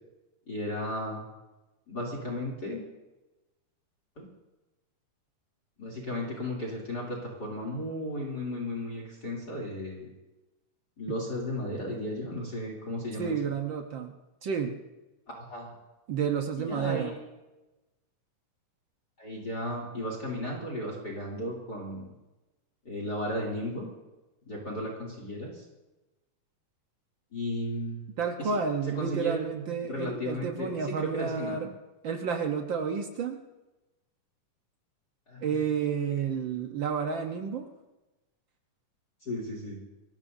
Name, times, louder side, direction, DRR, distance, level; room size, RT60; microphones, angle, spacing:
voice 1, 0.5-1.2 1.9-2.8 4.2-4.3 5.8-10.1 11.0-13.4 15.3-15.7 16.6-17.1 19.2-22.1 22.8-23.9 24.5-25.6 27.3-28.1 28.4-28.6 28.9-31.7 35.3-35.5 39.2-39.8, left 1 dB, 30° left, -1 dB, 3.3 m, -35 dB
voice 2, 13.2-14.1 14.4-14.8 16.1-17.1 28.2-31.7 32.0-33.4 35.4-37.7, right 6 dB, 85° right, 3 dB, 1.0 m, -30 dB
29.5 x 16.5 x 2.7 m, 1.1 s
omnidirectional pair, 3.7 m